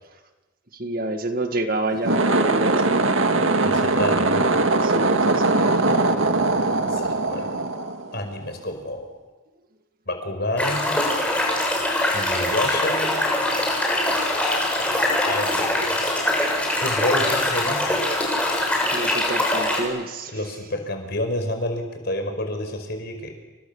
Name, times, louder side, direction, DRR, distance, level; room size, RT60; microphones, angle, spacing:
voice 1, 0.8-2.9 4.8-6.0 18.9-20.3, right 2 dB, 45° right, 6 dB, 2.0 m, -28 dB
sound 1, 1.9-8.5, right 2 dB, 70° right, 2.0 m, -21 dB
voice 2, 3.6-4.4 6.9-7.0 7.3-7.5 8.1-9.1 10.1-11.0 12.1-13.2 14.8-16.1 16.8-17.9 20.3-23.3, left 1 dB, 50° left, 5 dB, 5.5 m, -29 dB
sound 2, 10.6-19.8, left 1 dB, 5° left, 6.6 m, -23 dB
29.5 x 25.0 x 7.2 m, 1.2 s
head